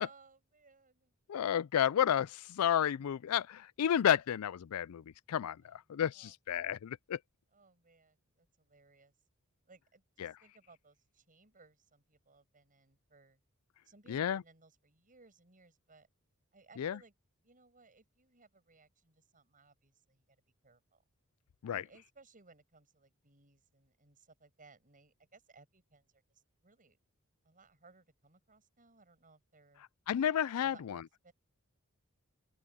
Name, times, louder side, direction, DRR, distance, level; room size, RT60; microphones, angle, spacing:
voice 1, 0.0-1.1 5.6-5.8 6.1-6.3 7.5-9.1 9.7-13.4 13.8-16.1 16.5-17.1 17.4-21.0 21.7-27.0 27.4-29.8 30.6-31.3, right 3 dB, 40° right, 7.2 m, -63 dB
voice 2, 1.3-5.0 5.3-7.2 10.2-10.3 14.1-14.4 16.8-17.0 21.6-21.8 30.1-31.0, left 9 dB, 90° left, 0.4 m, -31 dB
open air
head